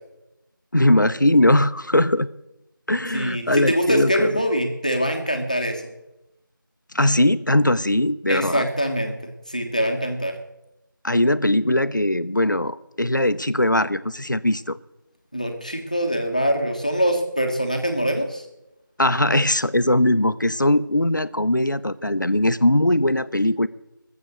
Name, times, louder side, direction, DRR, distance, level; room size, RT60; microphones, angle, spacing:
voice 1, 0.7-2.3 2.9-4.3 6.9-8.6 11.0-14.8 19.0-23.7, left 1 dB, 60° left, 0.8 m, -20 dB
voice 2, 3.1-5.9 8.3-9.2 9.5-10.3 15.3-18.4, equal, 20° left, 1.3 m, -23 dB
20.5 x 7.7 x 6.4 m
figure-of-eight pair, 175°, 11 cm